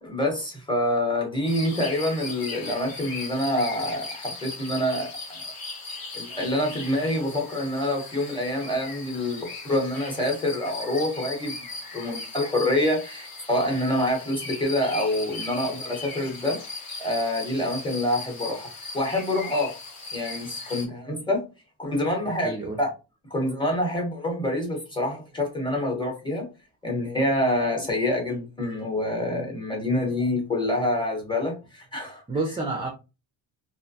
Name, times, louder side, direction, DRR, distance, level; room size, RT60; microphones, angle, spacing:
voice 1, 0.0-5.5 6.1-11.6 11.9-16.6 17.0-19.8 20.1-21.5 21.8-22.5 22.8-22.9 23.3-26.5 26.8-32.2, left 1 dB, 10° left, 0.9 m, -26 dB
sound 1, 1.5-20.9, left 3 dB, 50° left, 1.0 m, -38 dB
voice 2, 22.2-22.8 32.3-32.9, right 2 dB, 15° right, 0.3 m, -29 dB
2.6 x 2.1 x 2.6 m
cardioid pair, 130°, 45 cm